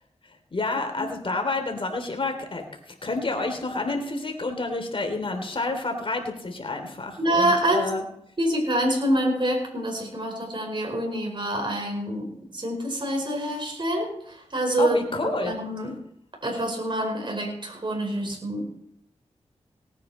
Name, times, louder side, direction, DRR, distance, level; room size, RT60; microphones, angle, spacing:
voice 1, 0.5-8.0 14.8-15.5, left 3 dB, 50° left, 4 dB, 3.1 m, -29 dB
voice 2, 7.2-7.8 8.4-15.0 15.2-15.9 16.4-18.7, right 1 dB, 45° right, 1 dB, 4.9 m, -26 dB
18.5 x 9.5 x 4.3 m, 0.74 s
cardioid pair, 45°, 12 cm